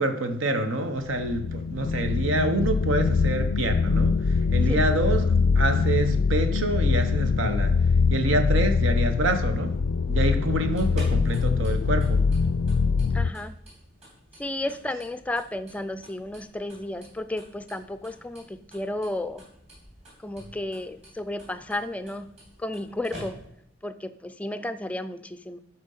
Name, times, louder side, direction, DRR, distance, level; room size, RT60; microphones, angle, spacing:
voice 1, 0.0-7.7 8.1-9.8 10.1-12.2, right 2 dB, 85° right, 8 dB, 1.0 m, -27 dB
sound 1, 1.1-13.3, left 5 dB, 85° left, 0.4 m, -23 dB
sound 2, 10.6-23.7, equal, 35° right, 3.6 m, -48 dB
voice 2, 13.1-13.5 14.4-19.4 20.2-22.3 22.6-23.4 23.8-25.6, left 1 dB, 5° left, 11 dB, 0.3 m, -33 dB
12.0 x 4.4 x 5.4 m, 0.73 s
head